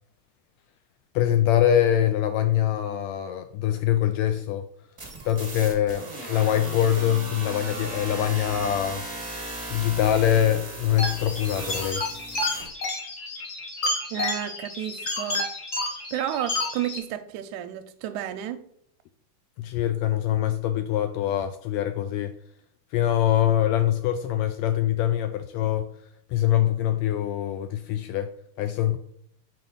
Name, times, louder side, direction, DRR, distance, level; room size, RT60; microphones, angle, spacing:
voice 1, 1.1-4.6 5.2-9.0 9.7-12.0 19.6-22.3 22.9-25.9 26.3-28.3 28.6-29.0, left 11 dB, 80° left, 1.7 m, -24 dB
sound 1, 5.0-12.7, right 2 dB, 50° right, 0.3 m, -37 dB
sound 2, 11.0-17.0, left 2 dB, 50° left, 1.3 m, -30 dB
voice 2, 14.1-15.5 16.1-18.6, right 11 dB, 90° right, 2.0 m, -31 dB
6.5 x 4.1 x 3.6 m
omnidirectional pair, 3.4 m